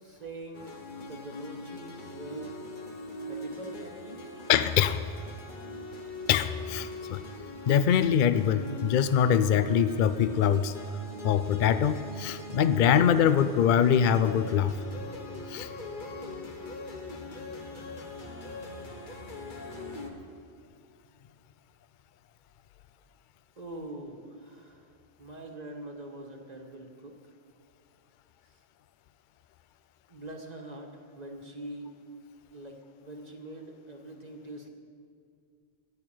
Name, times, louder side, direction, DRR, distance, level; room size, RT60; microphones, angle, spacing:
voice 1, 0.0-2.6 3.3-4.3 23.6-24.9 25.2-27.2 28.5-28.6 30.1-31.9 32.5-34.7, right 1 dB, 35° right, 3 dB, 1.5 m, -43 dB
sound 1, 0.5-20.1, left 1 dB, 45° left, 1.4 m, -41 dB
voice 2, 4.5-5.0 6.3-7.2 7.7-10.7 11.2-14.8 15.5-15.7, left 8 dB, 60° left, 12 dB, 0.5 m, -23 dB
11.0 x 10.5 x 9.1 m, 2.2 s
omnidirectional pair, 1.2 m